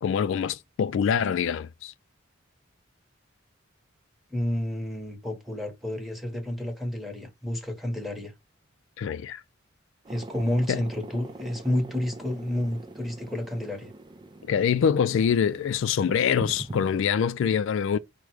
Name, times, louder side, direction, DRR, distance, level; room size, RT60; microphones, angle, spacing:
voice 1, 0.0-1.9 9.0-9.4 10.7-10.8 14.5-18.0, left 7 dB, 70° left, 0.3 m, -25 dB
voice 2, 4.3-8.3 10.1-13.9, left 1 dB, ahead, 1.0 m, -30 dB
sound 1, 10.0-17.0, right 2 dB, 25° right, 0.5 m, -43 dB
5.0 x 2.1 x 4.6 m
head